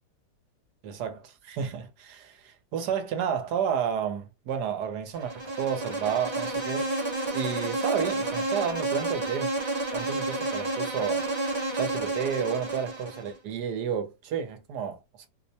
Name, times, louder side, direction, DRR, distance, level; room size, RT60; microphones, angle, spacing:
voice 1, 0.8-6.9 7.3-9.5 9.9-11.3 11.7-15.3, right 8 dB, 70° right, 1.3 m, -31 dB
Insect, 5.1-13.4, right 2 dB, 20° right, 0.9 m, -31 dB
4.4 x 2.1 x 2.8 m
omnidirectional pair, 1.9 m